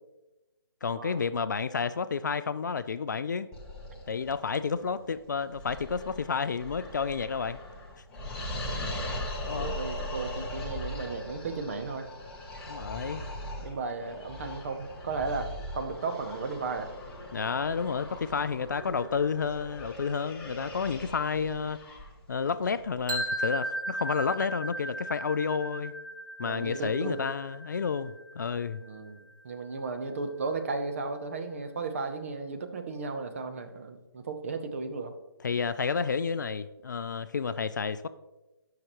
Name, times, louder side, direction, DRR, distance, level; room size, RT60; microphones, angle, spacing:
voice 1, 0.8-3.5 4.1-7.6 9.5-9.7 12.7-13.2 17.3-21.8 22.3-25.9 26.4-28.8 35.4-38.1, left 5 dB, 50° left, 13 dB, 0.4 m, -30 dB
sound 1, 3.5-23.2, left 1 dB, 5° left, 0.7 m, -40 dB
voice 2, 8.7-9.2 9.5-12.0 12.5-12.6 13.6-16.9 20.6-20.8 26.4-27.2 28.8-35.1, right 4 dB, 35° right, 7 dB, 0.7 m, -35 dB
sound 2, 23.1-29.0, right 1 dB, 50° right, 1.4 m, -36 dB
13.0 x 5.8 x 3.0 m, 1.0 s
hypercardioid pair, 165°, 13 cm